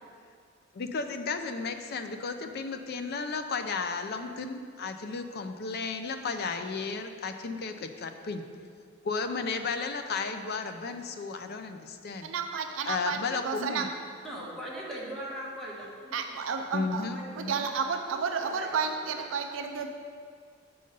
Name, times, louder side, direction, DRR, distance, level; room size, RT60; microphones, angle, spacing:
voice 1, 0.7-8.4 9.0-12.3 12.8-13.9 16.7-17.6, left 4 dB, 50° left, 7 dB, 0.4 m, -34 dB
voice 2, 12.2-13.2 13.4-13.9 16.1-17.1 17.4-19.9, right 5 dB, 70° right, 5 dB, 0.4 m, -31 dB
voice 3, 14.2-16.2 16.5-16.6 17.1-19.3, equal, ahead, -6 dB, 1.3 m, -41 dB
7.5 x 3.9 x 5.3 m, 2.2 s
head